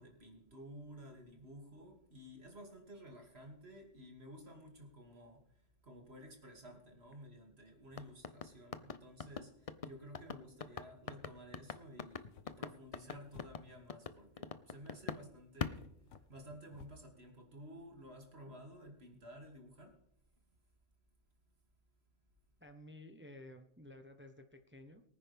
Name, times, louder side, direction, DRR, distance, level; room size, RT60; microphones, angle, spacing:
voice 1, 0.0-15.9 16.3-19.9, equal, 60° right, 2 dB, 3.0 m, -54 dB
sound 1, 7.9-15.3 15.6-16.7, left 5 dB, 40° left, 0.6 m, -43 dB
sound 2, 12.1-14.0 15.0-15.1 15.7-17.1, left 5 dB, 85° left, 1.3 m, -59 dB
voice 2, 22.6-25.0, left 1 dB, 10° right, 6 dB, 0.9 m, -54 dB
23.0 x 9.9 x 3.5 m, 0.73 s
omnidirectional pair, 1.2 m